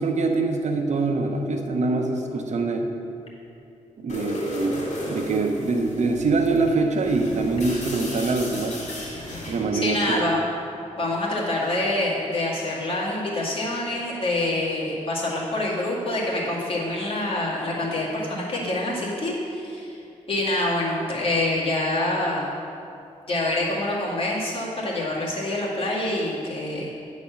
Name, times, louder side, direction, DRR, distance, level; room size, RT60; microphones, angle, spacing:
voice 1, 0.0-2.9 4.0-8.8 9.5-10.2, right 3 dB, 65° right, 3 dB, 0.8 m, -24 dB
sound 1, 4.1-9.7, left 1 dB, 65° left, 2.2 m, -35 dB
voice 2, 9.8-10.4 11.0-20.0 20.3-22.5 23.3-26.9, left 1 dB, 45° left, -5 dB, 2.1 m, -26 dB
9.8 x 4.2 x 7.1 m, 2.6 s
cardioid pair, 90°, 13 cm